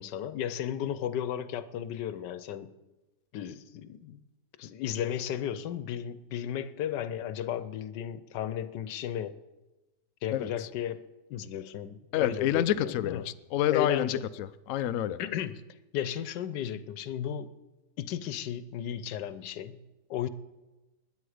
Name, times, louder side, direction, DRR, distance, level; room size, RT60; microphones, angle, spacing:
voice 1, 0.0-2.7 3.3-4.2 4.6-9.3 10.2-11.0 11.3-13.3 13.7-14.2 15.2-15.6 15.9-17.5 18.0-19.8 20.1-20.3, left 10 dB, 85° left, 14 dB, 1.4 m, -34 dB
voice 2, 10.3-10.7 12.1-15.2, left 11 dB, 70° left, 13 dB, 0.8 m, -28 dB
21.0 x 9.5 x 5.0 m, 1.1 s
omnidirectional pair, 1.8 m